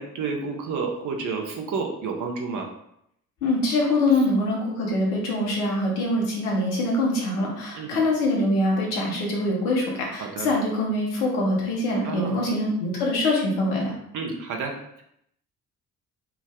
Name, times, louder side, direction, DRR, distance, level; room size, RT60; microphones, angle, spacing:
voice 1, 0.0-2.7 7.8-8.0 10.2-10.5 12.0-12.4 14.1-15.0, right 4 dB, 45° right, 2 dB, 0.7 m, -30 dB
voice 2, 3.4-14.0, left 1 dB, 70° left, -3 dB, 1.0 m, -24 dB
3.4 x 2.1 x 3.4 m, 0.76 s
figure-of-eight pair, 45°, 45 cm